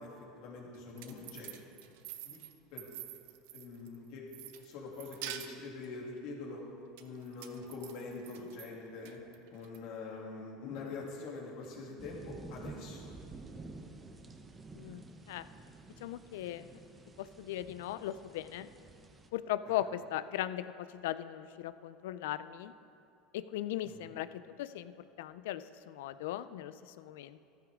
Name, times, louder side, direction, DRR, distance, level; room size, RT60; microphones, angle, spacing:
voice 1, 0.0-1.9 2.2-2.4 2.7-2.8 3.5-4.2 4.6-6.6 7.0-9.2 9.5-13.1 19.7-19.9 23.8-24.1, left 3 dB, 65° left, -2 dB, 2.8 m, -44 dB
sound 1, 0.7-4.0 4.3-5.9 7.0-8.7 9.1-9.8, right 12 dB, 75° right, 0.8 m, -47 dB
sound 2, 12.0-19.3, right 3 dB, 20° right, 0.9 m, -50 dB
voice 2, 16.0-16.7 17.2-18.7 19.3-22.7 23.3-24.9 25.2-27.4, left 12 dB, 85° left, 14 dB, 0.5 m, -38 dB
14.5 x 12.5 x 3.7 m, 2.6 s
supercardioid pair, 130°, 0 cm